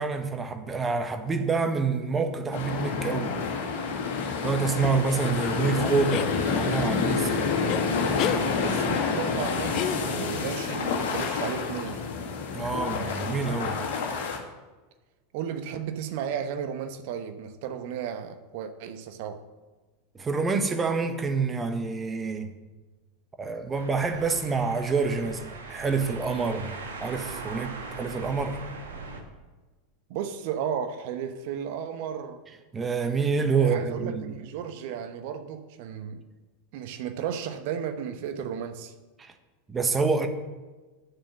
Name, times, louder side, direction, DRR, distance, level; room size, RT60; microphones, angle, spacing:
voice 1, 0.0-3.4 4.4-7.4 12.5-13.8 20.1-22.5 23.4-26.7 27.0-28.6 32.7-34.4 39.2-39.3 39.7-40.3, right 4 dB, 20° right, 1.3 m, -27 dB
sound 1, 2.5-14.4, left 5 dB, 55° left, 1.9 m, -28 dB
sound 2, 6.1-6.4 7.7-7.8 8.2-8.4 9.7-10.4, left 10 dB, 40° left, 0.6 m, -30 dB
voice 2, 8.5-12.0 15.3-19.4 30.1-32.4 33.6-36.2 36.7-38.9, right 8 dB, 50° right, 1.1 m, -34 dB
sound 3, 23.7-29.2, right 3 dB, 70° right, 1.7 m, -40 dB
9.8 x 7.4 x 6.2 m
figure-of-eight pair, 85°, 0 cm